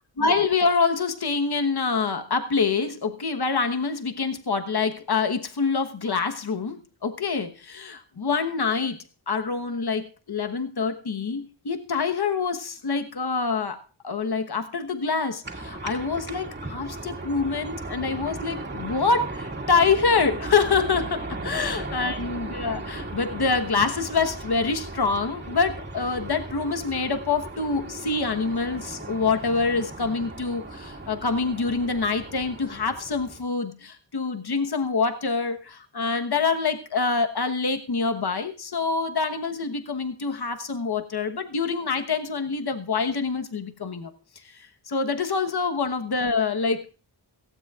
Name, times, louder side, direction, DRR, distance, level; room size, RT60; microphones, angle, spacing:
voice 1, 0.2-9.0 9.3-21.2 21.4-44.1 44.4-46.9, left 4 dB, 60° left, 7 dB, 1.2 m, -26 dB
sound 1, 15.4-33.4, right 2 dB, 25° right, 2.2 m, -36 dB
17.0 x 15.5 x 2.4 m, 0.34 s
wide cardioid pair, 85°, 44 cm